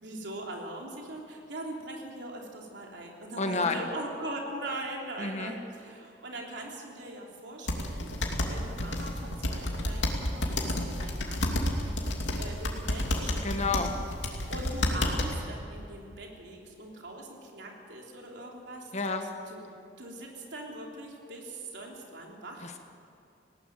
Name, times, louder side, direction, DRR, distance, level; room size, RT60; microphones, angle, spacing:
voice 1, 0.0-12.0 12.4-13.4 13.7-13.9 14.5-19.1 19.5-19.6 20.0-22.7, right 1 dB, 75° right, -1 dB, 3.4 m, -41 dB
voice 2, 3.4-3.9 5.2-5.5 13.4-13.9 18.9-19.3 22.6-22.8, left 3 dB, 40° left, 5 dB, 1.7 m, -30 dB
sound 1, 7.7-15.4, left 1 dB, 85° left, 2.7 m, -31 dB
19.5 x 17.5 x 7.8 m, 2.6 s
head